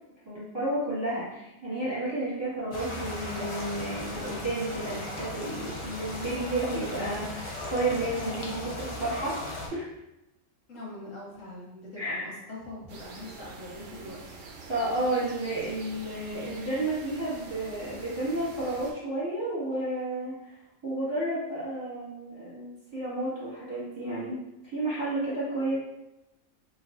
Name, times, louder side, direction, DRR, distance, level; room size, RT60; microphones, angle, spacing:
voice 1, 0.2-9.4 9.7-9.9 12.0-12.3 14.7-20.5 20.8-24.4 24.7-25.8, right 2 dB, 20° right, -10 dB, 1.5 m, -31 dB
sound 1, 2.7-9.7, left 1 dB, 40° left, 0.4 m, -37 dB
voice 2, 10.7-14.2, left 2 dB, 65° left, -5 dB, 1.3 m, -43 dB
sound 2, 12.9-18.9, right 3 dB, 70° right, 1.0 m, -45 dB
3.9 x 3.1 x 2.5 m, 0.91 s
omnidirectional pair, 1.4 m